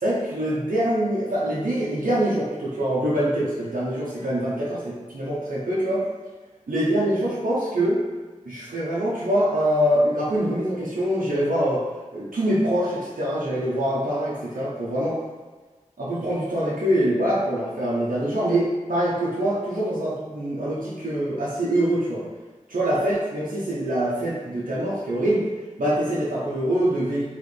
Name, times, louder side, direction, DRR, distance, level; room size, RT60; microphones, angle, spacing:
voice 1, 0.0-6.0 6.7-8.0 8.4-11.8 12.1-15.2 16.0-22.2 22.7-25.4 25.8-27.2, right 1 dB, 85° right, -8 dB, 0.8 m, -24 dB
4.1 x 3.2 x 3.3 m, 1.3 s
wide cardioid pair, 70°, 14 cm